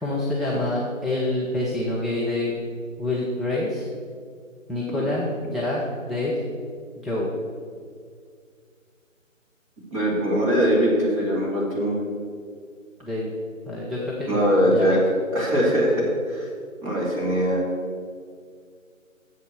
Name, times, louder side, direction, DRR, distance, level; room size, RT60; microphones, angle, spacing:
voice 1, 0.0-2.6 3.0-3.9 4.7-6.4 7.0-7.3 13.0-13.3 13.7-15.0, left 2 dB, ahead, -7 dB, 0.4 m, -27 dB
voice 2, 9.9-12.0 14.3-15.0 15.3-16.5 16.8-17.6, equal, 25° right, -6 dB, 2.6 m, -21 dB
7.4 x 6.4 x 6.7 m, 2.1 s
figure-of-eight pair, 160°, 40 cm